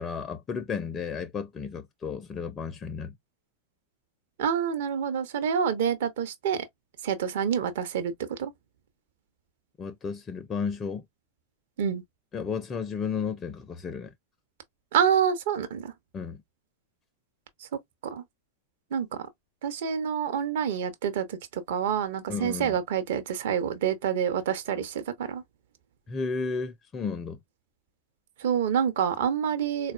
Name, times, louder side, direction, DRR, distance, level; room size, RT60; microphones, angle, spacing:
voice 1, 0.0-3.1 9.8-11.0 12.3-14.1 16.1-16.4 22.3-22.8 26.1-27.4, left 5 dB, 25° left, 0.4 m, -33 dB
voice 2, 4.4-6.7 7.0-8.5 11.8-12.0 14.9-15.9 17.6-17.7 18.0-18.2 18.9-19.3 19.6-25.4 28.4-29.9, right 8 dB, 55° right, 0.7 m, -27 dB
4.2 x 2.2 x 2.3 m
figure-of-eight pair, 90°, 0 cm